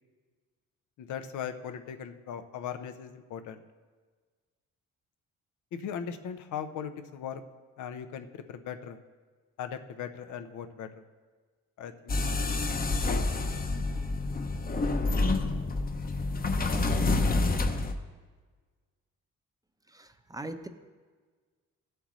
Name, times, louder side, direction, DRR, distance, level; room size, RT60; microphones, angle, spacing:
voice 1, 1.0-3.6 5.7-7.4 7.8-9.0 9.6-11.0 11.8-12.3, left 8 dB, 80° left, 8 dB, 0.8 m, -39 dB
sound 1, 12.1-17.9, left 3 dB, 30° left, 0.8 m, -28 dB
voice 2, 19.9-20.7, right 2 dB, 10° right, 9 dB, 0.6 m, -41 dB
15.5 x 7.9 x 3.1 m, 1.5 s
cardioid pair, 90°, 30 cm